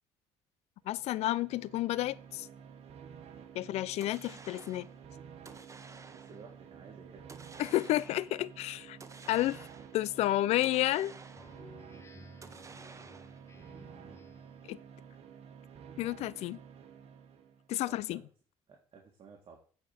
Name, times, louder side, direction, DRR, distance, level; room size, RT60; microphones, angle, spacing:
sound 1, 0.8-17.7, right 7 dB, 65° right, 1.4 m, -51 dB
voice 1, 0.9-2.5 3.5-4.9 7.6-9.0 9.3-9.6 9.9-11.1 14.7-14.8 16.0-16.6 17.7-18.2, left 15 dB, 70° left, 0.5 m, -31 dB
sound 2, 4.0-5.0 5.5-6.5 7.3-8.3 9.0-10.1 10.6-11.7 12.4-13.5, right 4 dB, 25° right, 1.0 m, -52 dB
voice 2, 6.1-7.5 17.8-18.3 18.7-19.6, right 5 dB, 50° right, 1.9 m, -54 dB
Speech synthesizer, 11.3-14.7, left 2 dB, 25° left, 1.4 m, -56 dB
9.0 x 4.5 x 6.9 m
supercardioid pair, 85°, 11 cm